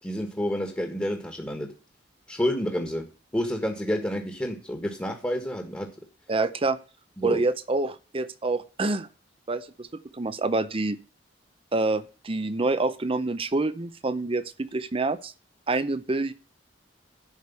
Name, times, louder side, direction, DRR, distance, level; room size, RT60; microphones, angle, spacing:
voice 1, 0.0-1.7 2.3-3.1 3.3-5.9 7.2-7.4, equal, 10° left, 1.6 m, -29 dB
voice 2, 6.3-6.8 7.2-9.1 9.5-9.9 10.1-11.0 11.7-15.3 15.7-16.3, right 2 dB, 30° right, 0.6 m, -27 dB
11.5 x 5.1 x 8.1 m
head